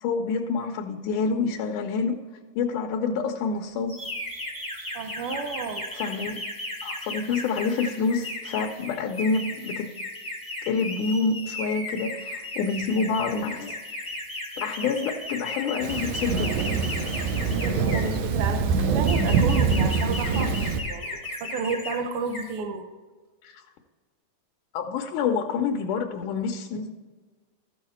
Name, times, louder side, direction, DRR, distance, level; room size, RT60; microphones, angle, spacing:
voice 1, 0.0-2.2 2.6-4.0 5.9-6.4 6.8-9.9 10.6-13.8 14.6-16.5 23.4-23.6 24.7-26.9, left 5 dB, 80° left, 2 dB, 2.2 m, -27 dB
sound 1, 3.9-18.2 18.8-22.0 22.2-22.6, left 2 dB, 10° left, 1.5 m, -35 dB
voice 2, 4.9-5.9 17.5-22.9, right 4 dB, 85° right, 6 dB, 1.2 m, -31 dB
Thunder, 15.8-20.8, right 5 dB, 70° right, 2.0 m, -24 dB
14.0 x 6.5 x 4.2 m, 1.4 s
omnidirectional pair, 3.6 m